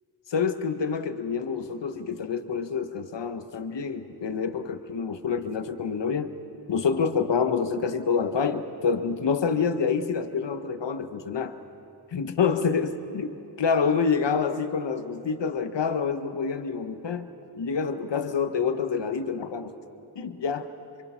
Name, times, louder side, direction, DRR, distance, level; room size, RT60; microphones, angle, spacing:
voice 1, 0.3-6.3 6.7-11.6 12.1-17.3 17.5-19.7 20.1-20.7, left 6 dB, 75° left, 9 dB, 1.2 m, -27 dB
26.0 x 24.0 x 5.7 m, 2.9 s
cardioid pair, 40°, 43 cm